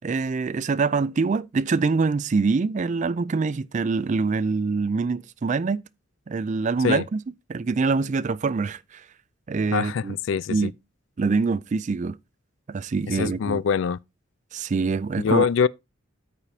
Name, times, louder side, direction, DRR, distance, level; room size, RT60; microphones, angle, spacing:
voice 1, 0.0-5.8 6.3-7.2 7.5-9.0 9.5-10.2 10.5-10.7 11.2-12.2 12.7-13.6 14.5-15.5, right 4 dB, 35° right, 0.4 m, -24 dB
voice 2, 9.7-10.7 13.1-14.0 15.2-15.7, left 6 dB, 65° left, 0.3 m, -23 dB
13.5 x 4.9 x 2.8 m
head